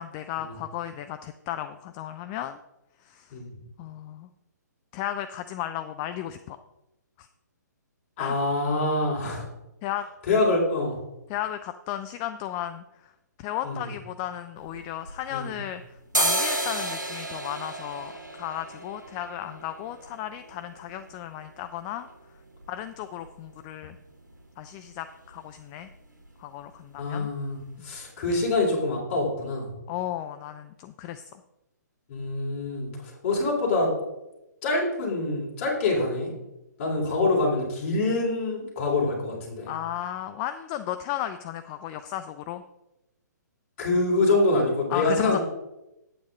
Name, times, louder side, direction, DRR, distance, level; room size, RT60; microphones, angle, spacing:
voice 1, 0.0-2.6 3.0-3.4 3.8-4.3 4.9-6.6 7.2-7.3 8.2-8.4 9.3-9.4 9.8-10.1 11.3-13.1 13.4-18.1 18.4-22.1 22.7-24.0 24.6-25.9 26.4-27.3 27.8-27.9 29.9-31.2 39.7-42.6 44.9-45.4, left 12 dB, 25° left, 9 dB, 0.3 m, -34 dB
voice 2, 8.2-9.5 10.3-11.0 13.6-13.8 15.3-15.6 26.9-29.7 32.1-32.9 33.2-33.9 34.6-36.3 36.8-39.7 43.8-45.4, left 2 dB, 40° left, -2 dB, 3.7 m, -25 dB
sound 1, 14.6-15.6 16.0-23.7 24.0-24.1 24.3-24.9 25.2-25.4 25.7-25.9 26.2-26.9 27.3-27.4 27.9-28.0 28.3-28.4, right 1 dB, 85° right, 1.5 m, -33 dB
8.8 x 8.6 x 3.8 m, 0.93 s
figure-of-eight pair, 130°, 10 cm